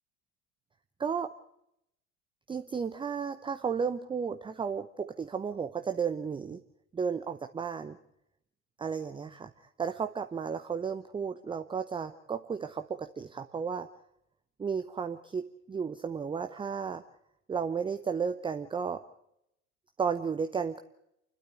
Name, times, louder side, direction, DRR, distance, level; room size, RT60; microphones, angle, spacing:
voice 1, 1.0-1.3 2.5-6.6 6.9-8.0 8.8-9.5 9.8-13.9 14.6-17.0 17.5-19.0 20.0-20.8, right 6 dB, 10° right, 8 dB, 0.7 m, -33 dB
29.0 x 12.5 x 7.9 m, 0.80 s
figure-of-eight pair, 80°, 43 cm